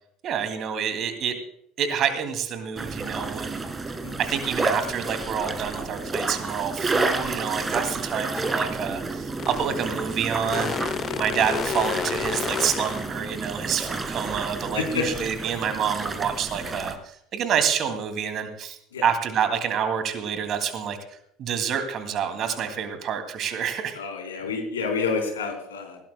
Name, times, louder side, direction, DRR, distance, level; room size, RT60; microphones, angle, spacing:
voice 1, 0.2-1.4 1.8-3.6 4.2-24.0, right 7 dB, 45° right, 8 dB, 2.3 m, -28 dB
sound 1, 2.8-17.0, right 3 dB, 20° right, 1.9 m, -30 dB
sound 2, 9.4-9.7 10.5-13.1, left 9 dB, 40° left, 0.5 m, -30 dB
voice 2, 14.7-15.1 18.9-19.1 23.9-26.0, left 5 dB, 75° left, 3 dB, 3.5 m, -28 dB
19.0 x 17.5 x 2.2 m, 0.70 s
figure-of-eight pair, 65°, 0 cm